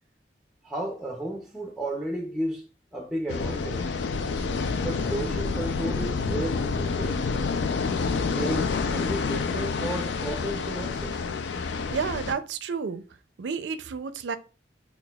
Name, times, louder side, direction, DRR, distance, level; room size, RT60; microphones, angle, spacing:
voice 1, 0.6-2.6 2.9-3.8 4.8-7.2 8.3-11.2, right 1 dB, ahead, 0.4 m, -33 dB
sound 1, 3.3-12.3, left 4 dB, 90° left, 0.4 m, -28 dB
voice 2, 11.9-13.0 13.4-14.4, right 5 dB, 85° right, 0.4 m, -31 dB
5.7 x 2.3 x 2.3 m
head